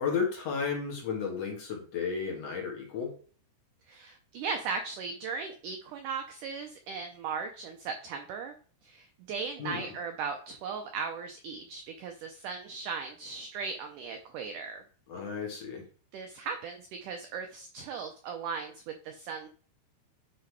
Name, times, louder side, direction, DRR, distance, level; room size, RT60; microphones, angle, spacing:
voice 1, 0.0-3.1 9.6-9.9 15.1-15.8, left 6 dB, 50° left, -1 dB, 2.4 m, -33 dB
voice 2, 3.9-8.5 8.8-14.8 16.1-19.5, right 5 dB, 80° right, 5 dB, 1.8 m, -37 dB
10.0 x 3.8 x 4.7 m, 0.43 s
omnidirectional pair, 4.6 m